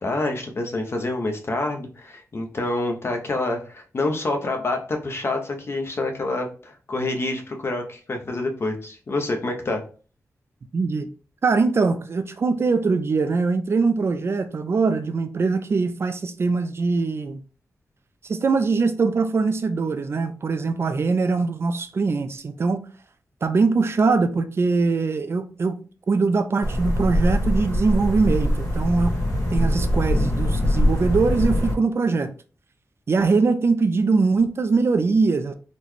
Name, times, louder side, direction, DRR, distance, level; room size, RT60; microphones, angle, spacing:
voice 1, 0.0-9.8, left 2 dB, 45° left, 0.7 m, -27 dB
voice 2, 10.7-11.1 11.4-17.4 18.2-22.8 23.4-25.8 26.1-29.2 29.5-32.3 33.1-35.5, right 4 dB, 45° right, 0.4 m, -22 dB
sound 1, 26.6-31.7, equal, 65° left, 1.5 m, -22 dB
3.8 x 2.2 x 3.1 m
wide cardioid pair, 95°, 6 cm